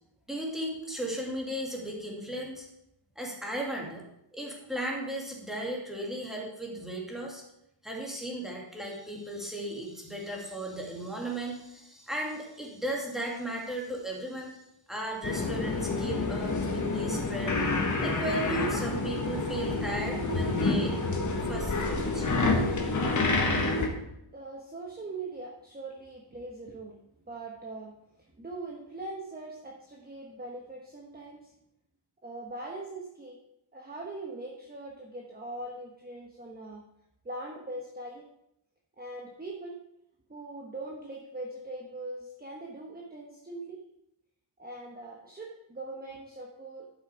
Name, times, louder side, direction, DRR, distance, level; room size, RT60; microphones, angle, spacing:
voice 1, 0.3-2.7 3.2-4.0 4.3-7.4 7.8-14.6 14.9-17.6 18.0-20.9 21.4-22.3, right 1 dB, ahead, -2 dB, 2.3 m, -36 dB
sound 1, 15.2-23.9, left 3 dB, 35° left, 1.5 m, -28 dB
voice 2, 23.9-27.0 27.3-27.9 28.3-31.5 32.2-33.4 33.7-36.8 37.2-38.2 39.0-39.8 40.3-43.8 44.6-46.9, right 2 dB, 20° right, -1 dB, 1.2 m, -41 dB
11.5 x 6.5 x 4.9 m, 0.80 s
wide cardioid pair, 150°, 49 cm